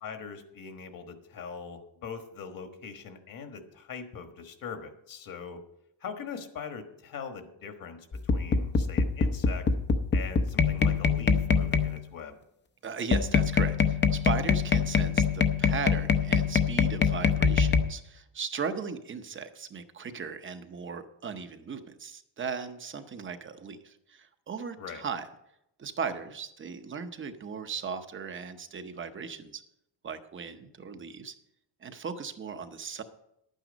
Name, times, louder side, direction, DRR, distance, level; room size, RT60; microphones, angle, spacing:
voice 1, 0.0-5.6 6.0-9.7 10.1-12.4 24.8-25.0, left 6 dB, 50° left, 6 dB, 1.4 m, -41 dB
sound 1, 8.1-12.0 13.1-17.8, left 5 dB, 25° left, 0.6 m, -24 dB
voice 2, 12.8-25.3 25.8-29.6 30.0-31.3 31.8-33.0, right 6 dB, 30° right, 9 dB, 0.8 m, -37 dB
11.0 x 9.1 x 5.1 m, 0.81 s
cardioid pair, 155°, 44 cm